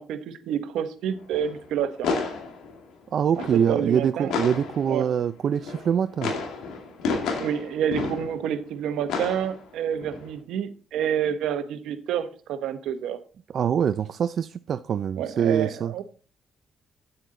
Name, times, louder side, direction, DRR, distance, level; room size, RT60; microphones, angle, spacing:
voice 1, 0.0-2.1 3.7-4.3 4.9-5.1 7.4-13.2 15.2-16.0, right 9 dB, 85° right, 10 dB, 1.1 m, -28 dB
sound 1, 1.0-5.1 5.5-8.6 9.1-10.4, left 4 dB, 85° left, 2.3 m, -31 dB
voice 2, 3.1-6.3 13.5-15.9, right 8 dB, 60° right, 11 dB, 0.4 m, -24 dB
10.0 x 8.0 x 3.9 m, 0.37 s
cardioid pair, 90°, 0 cm